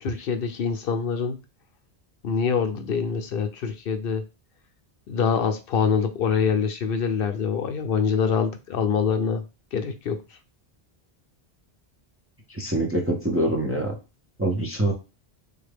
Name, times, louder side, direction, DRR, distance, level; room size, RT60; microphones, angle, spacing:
voice 1, 0.0-1.4 2.2-4.2 5.1-9.4 9.7-10.2, left 6 dB, 70° left, 0.7 m, -25 dB
voice 2, 12.5-14.0 14.4-14.9, right 1 dB, 20° right, 0.4 m, -24 dB
3.5 x 2.1 x 3.3 m
omnidirectional pair, 1.0 m